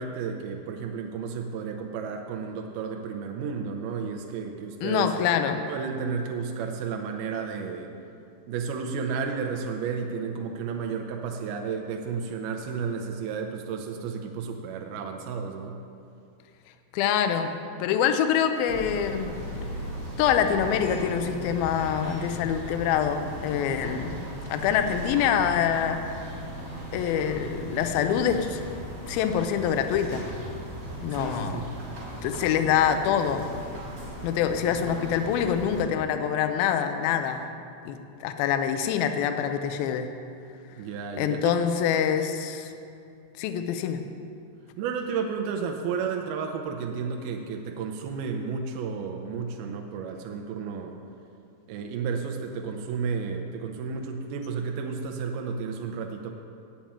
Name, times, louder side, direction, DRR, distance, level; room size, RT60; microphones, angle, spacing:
voice 1, 0.0-5.1 5.7-7.9 8.5-15.8 31.1-31.7 40.8-41.6 44.8-51.0 51.7-56.3, right 5 dB, 80° right, 3 dB, 2.2 m, -32 dB
voice 2, 4.8-5.6 16.9-19.3 20.2-26.1 26.9-28.6 29.1-30.2 31.0-31.6 32.2-33.5 34.2-37.5 37.9-40.1 41.2-42.7 43.4-44.0, left 8 dB, 85° left, 7 dB, 2.1 m, -25 dB
sound 1, 18.7-35.8, right 1 dB, 35° right, 3.5 m, -37 dB
9.0 x 7.1 x 8.7 m, 2.5 s
omnidirectional pair, 5.1 m